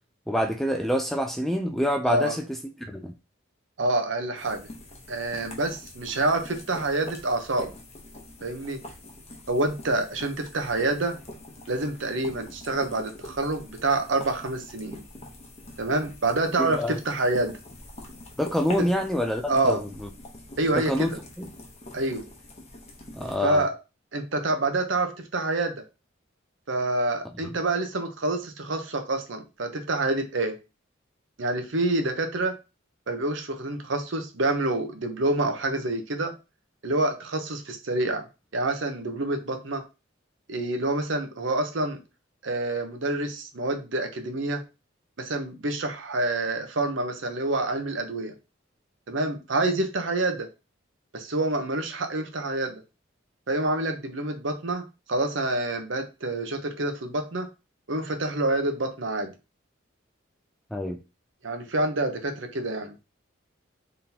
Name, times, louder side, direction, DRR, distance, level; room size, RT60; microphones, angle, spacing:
voice 1, 0.3-3.1 16.6-17.0 18.4-19.8 20.8-21.1 21.4-21.5 23.2-23.7 60.7-61.0, equal, ahead, 4 dB, 0.4 m, -26 dB
voice 2, 3.8-4.7 5.1-7.7 8.4-8.8 9.5-11.2 11.7-15.0 15.8-17.5 18.8-18.9 19.5-19.8 20.6-21.2 21.9-22.2 23.4-23.7 24.1-25.8 26.7-30.6 31.4-32.6 33.1-36.3 36.8-38.3 38.5-39.8 40.5-42.0 42.4-44.6 45.2-48.3 49.1-50.5 51.1-52.8 53.5-54.8 55.1-57.5 57.9-59.3 61.4-62.9, right 2 dB, 65° right, 6 dB, 0.8 m, -27 dB
sound 1, 4.4-23.4, left 1 dB, 30° left, 0.8 m, -45 dB
3.8 x 3.8 x 2.8 m, 0.28 s
head